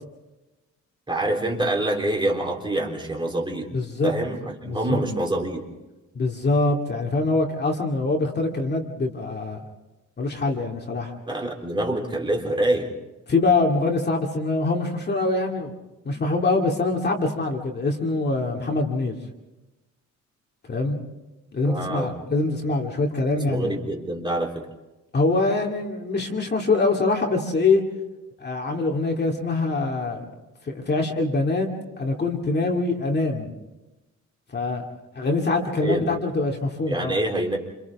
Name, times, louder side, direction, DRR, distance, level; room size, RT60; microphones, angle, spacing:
voice 1, 1.1-3.7 4.0-5.6 11.3-12.9 21.6-22.1 23.3-24.7 35.8-36.1 36.9-37.6, right 1 dB, 15° right, 1 dB, 3.5 m, -26 dB
voice 2, 3.7-4.1 4.6-5.0 6.1-9.6 10.2-11.1 13.3-15.7 16.1-19.1 20.7-21.1 21.5-23.8 25.1-27.8 28.4-30.2 30.7-31.7 32.0-33.5 34.5-34.8 35.2-37.2, left 3 dB, 35° left, 1 dB, 2.3 m, -24 dB
28.5 x 28.0 x 3.6 m, 1.0 s
cardioid pair, 150°, 31 cm